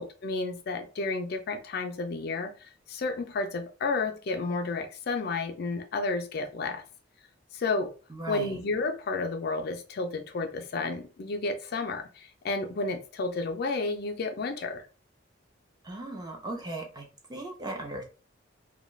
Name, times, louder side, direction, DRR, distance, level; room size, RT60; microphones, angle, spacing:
voice 1, 0.0-2.5 2.9-6.8 7.5-7.9 8.3-14.8, left 3 dB, 55° left, 6 dB, 0.4 m, -31 dB
voice 2, 8.1-8.6 15.8-18.0, right 2 dB, 20° right, 2 dB, 0.5 m, -38 dB
2.3 x 2.2 x 3.0 m, 0.35 s
head